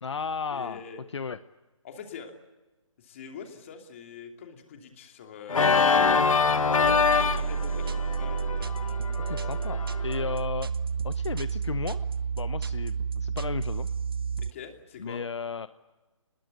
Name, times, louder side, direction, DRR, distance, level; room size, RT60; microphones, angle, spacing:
voice 1, 0.0-0.8 1.1-1.4 9.2-10.7 11.0-12.1 12.4-13.9 15.0-15.7, left 5 dB, 60° left, 12 dB, 1.0 m, -34 dB
voice 2, 0.5-1.0 1.8-2.3 3.0-5.9 7.4-8.7 14.4-15.2, left 5 dB, 25° left, 4 dB, 2.8 m, -44 dB
Organ, 5.5-10.3, left 5 dB, 90° left, 1.7 m, -25 dB
sound 1, 6.8-14.5, right 6 dB, 45° right, 0.9 m, -30 dB
27.5 x 21.0 x 8.4 m, 1.2 s
hypercardioid pair, 175°, 17 cm